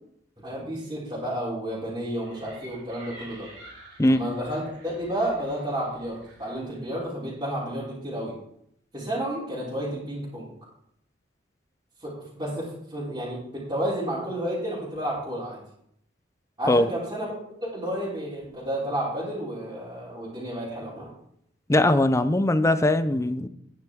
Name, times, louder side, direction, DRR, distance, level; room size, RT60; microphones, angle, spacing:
voice 1, 0.4-3.5 4.1-8.3 8.9-10.5 12.0-15.6 16.6-17.3 17.6-21.1, right 1 dB, 25° right, -8 dB, 3.1 m, -31 dB
sound 1, 2.2-7.0, right 1 dB, 90° right, 3.8 m, -49 dB
voice 2, 21.7-23.5, left 1 dB, 15° left, 12 dB, 0.5 m, -20 dB
10.5 x 9.4 x 3.6 m, 0.73 s
head